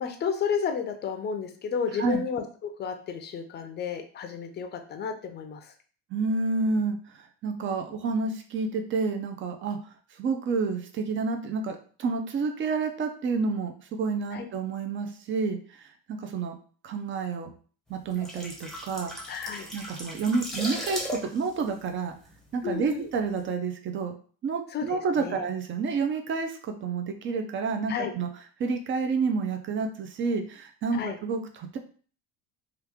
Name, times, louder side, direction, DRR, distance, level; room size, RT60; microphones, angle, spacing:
voice 1, 0.0-5.7 14.3-14.4 19.3-19.7 22.6-23.1 24.7-25.3 27.9-28.1 30.9-31.2, left 6 dB, 30° left, 5 dB, 0.6 m, -32 dB
voice 2, 6.1-9.8 10.2-16.5 16.8-17.5 17.9-19.1 19.7-22.1 22.5-24.1 24.4-28.3 28.6-31.8, right 4 dB, 35° right, 5 dB, 0.6 m, -29 dB
sound 1, 18.0-22.8 23.1-23.3, equal, ahead, 0.8 m, -37 dB
3.1 x 2.4 x 3.5 m, 0.42 s
cardioid pair, 120°, 34 cm